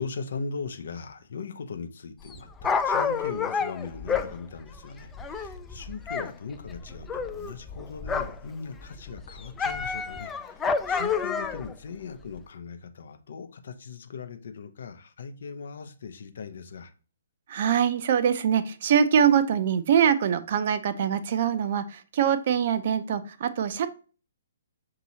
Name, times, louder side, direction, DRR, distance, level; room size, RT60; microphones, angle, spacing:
voice 1, 0.0-16.9, left 5 dB, 60° left, 0.6 m, -39 dB
Dog, 2.2-6.3 6.6-8.5 8.8-11.7 12.4-12.5, left 5 dB, 15° left, 0.3 m, -29 dB
voice 2, 17.5-23.9, right 8 dB, 50° right, 0.5 m, -23 dB
6.0 x 2.8 x 2.7 m
figure-of-eight pair, 130°, 0 cm